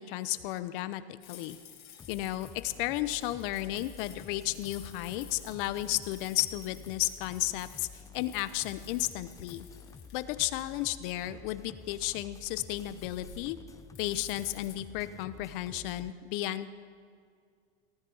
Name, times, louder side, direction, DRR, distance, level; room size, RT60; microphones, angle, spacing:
voice 1, 0.0-1.6 2.1-7.9 8.1-9.7 10.1-13.6 14.0-16.7, left 15 dB, 50° left, 14 dB, 0.8 m, -33 dB
sound 1, 1.2-14.7, left 8 dB, 70° left, 3.1 m, -53 dB
sound 2, 2.0-16.1, left 6 dB, 10° left, 0.5 m, -50 dB
19.0 x 13.5 x 4.0 m, 2.1 s
hypercardioid pair, 120°, 34 cm